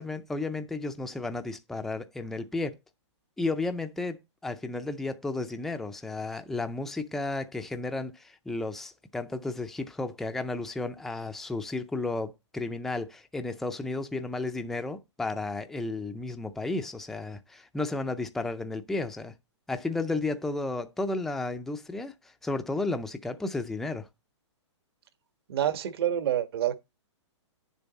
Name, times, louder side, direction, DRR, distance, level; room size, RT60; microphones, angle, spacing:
voice 1, 0.0-2.8 3.4-19.3 19.7-22.1 22.4-24.1, left 2 dB, ahead, 0.5 m, -33 dB
voice 2, 25.5-26.9, right 11 dB, 55° right, 1.4 m, -28 dB
9.9 x 7.1 x 4.0 m
hypercardioid pair, 155°, 15 cm